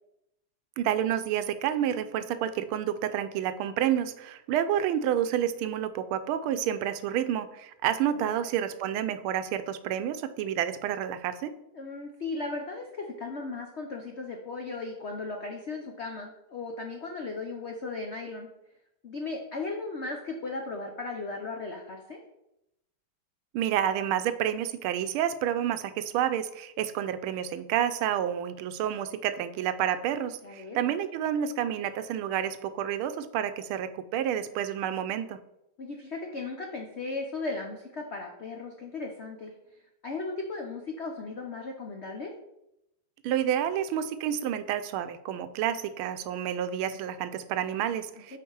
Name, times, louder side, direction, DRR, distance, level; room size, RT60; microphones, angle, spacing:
voice 1, 0.8-11.6 23.5-35.4 43.2-48.4, right 10 dB, 85° right, 11 dB, 1.5 m, -29 dB
voice 2, 11.7-18.5 19.0-22.2 30.4-30.9 35.8-39.5 40.0-42.3 48.3-48.4, left 3 dB, 75° left, 2 dB, 0.6 m, -36 dB
7.2 x 4.5 x 4.6 m, 0.84 s
omnidirectional pair, 2.3 m